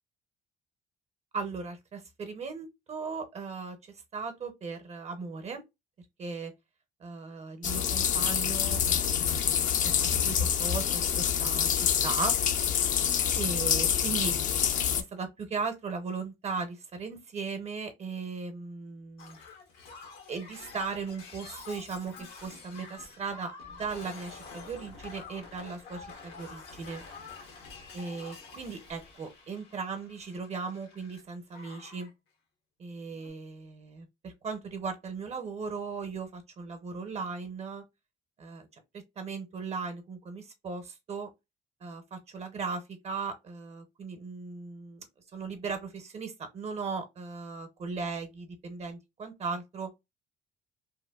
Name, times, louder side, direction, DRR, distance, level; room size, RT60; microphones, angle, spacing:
voice 1, 1.3-5.6 6.2-6.5 7.0-9.7 10.2-12.4 13.3-14.3 15.0-19.4 20.3-23.5 23.8-27.0 27.9-32.1 32.8-37.8 38.4-38.8 39.2-41.3 41.8-45.0 45.3-49.9, right 4 dB, 40° right, 0.6 m, -37 dB
sound 1, 7.6-15.0, left 8 dB, 50° left, 0.4 m, -27 dB
Shatter, 19.2-31.2 31.5-32.1 33.1-33.3, left 4 dB, 90° left, 0.8 m, -48 dB
2.9 x 2.2 x 2.2 m
cardioid pair, 110°, 17 cm